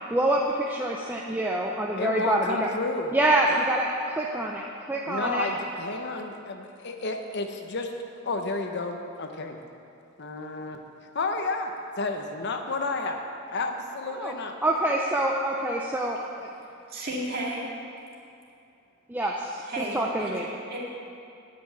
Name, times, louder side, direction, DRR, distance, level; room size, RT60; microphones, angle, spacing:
voice 1, 0.1-2.7 3.1-5.5 14.1-14.3 14.6-16.5 19.1-20.5, right 1 dB, 10° right, -2 dB, 0.5 m, -26 dB
voice 2, 2.0-3.1 5.1-7.9 8.2-9.6 10.2-10.8 11.1-13.2 13.5-14.6, left 3 dB, 55° left, 5 dB, 0.8 m, -31 dB
voice 3, 16.9-17.7 19.2-19.4 19.6-20.8, right 1 dB, 45° right, -4 dB, 2.2 m, -33 dB
9.7 x 5.9 x 8.5 m, 2.6 s
head